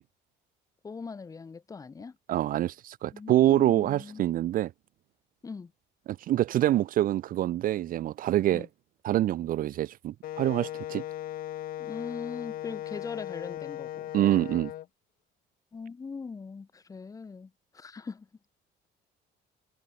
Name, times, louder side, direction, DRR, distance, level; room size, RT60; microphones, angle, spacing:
voice 1, 0.8-2.2 3.1-4.2 5.4-5.7 8.5-8.7 11.8-14.1 15.7-18.3, left 4 dB, 20° left, 0.9 m, -41 dB
voice 2, 2.3-4.7 6.1-8.7 9.0-11.0 14.1-14.7, right 13 dB, 50° right, 0.5 m, -26 dB
Wind instrument woodwind instrument, 10.2-14.9, left 13 dB, 50° left, 0.8 m, -37 dB
cardioid pair, 140°, 19 cm